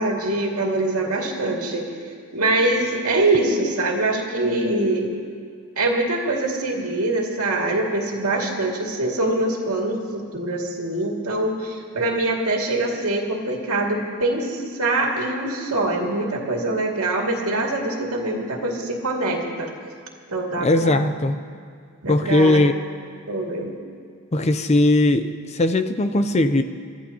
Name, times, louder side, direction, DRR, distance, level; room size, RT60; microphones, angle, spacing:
voice 1, 0.0-1.9 2.3-5.1 5.8-19.7 20.3-21.2 22.0-22.7 23.3-23.7, right 2 dB, 85° right, -1 dB, 2.4 m, -24 dB
voice 2, 20.6-21.4 22.1-22.8 24.3-26.6, left 2 dB, 30° left, 9 dB, 0.5 m, -19 dB
24.5 x 14.0 x 2.9 m, 2.1 s
head